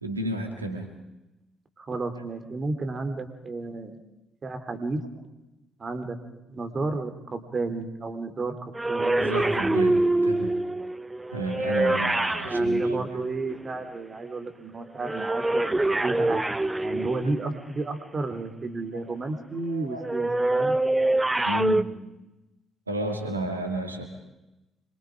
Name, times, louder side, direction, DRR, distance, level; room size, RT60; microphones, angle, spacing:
voice 1, 0.0-0.9 9.2-10.6 11.3-13.1 18.9-19.0 19.7-20.1 21.4-21.9 22.9-24.0, right 1 dB, 90° right, 4 dB, 2.4 m, -32 dB
voice 2, 1.8-4.0 4.4-5.0 5.8-6.2 6.5-9.2 12.4-16.4 16.8-20.8, right 3 dB, 35° right, 8 dB, 3.3 m, -32 dB
sound 1, 8.7-13.8 15.0-17.6 20.0-21.8, right 2 dB, 15° right, 0.9 m, -25 dB
26.5 x 23.5 x 5.1 m, 0.99 s
figure-of-eight pair, 45°, 0 cm